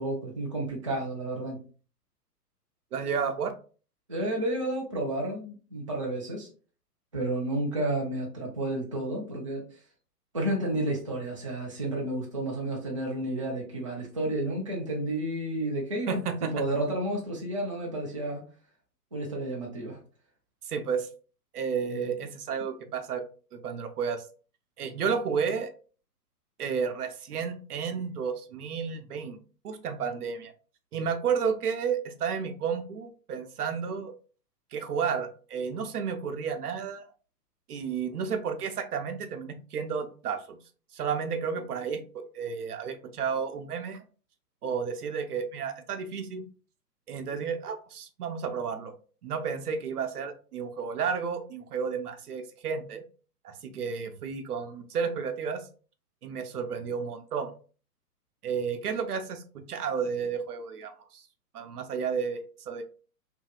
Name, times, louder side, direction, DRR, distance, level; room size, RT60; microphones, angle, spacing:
voice 1, 0.0-1.6 4.1-6.5 7.1-9.6 10.3-16.2 16.5-18.4 19.1-20.0, right 1 dB, 25° right, -2 dB, 0.3 m, -31 dB
voice 2, 2.9-3.5 16.1-16.7 20.7-21.1 21.5-23.2 23.5-24.2 24.8-25.7 26.6-29.4 29.6-30.5 30.9-34.1 34.7-37.0 37.7-40.6 40.9-44.0 44.6-46.5 47.1-48.9 49.2-53.0 53.4-55.6 56.2-57.5 58.4-61.2 61.5-62.8, right 6 dB, 70° right, 7 dB, 0.7 m, -32 dB
2.7 x 2.6 x 2.3 m, 0.38 s
figure-of-eight pair, 115°, 48 cm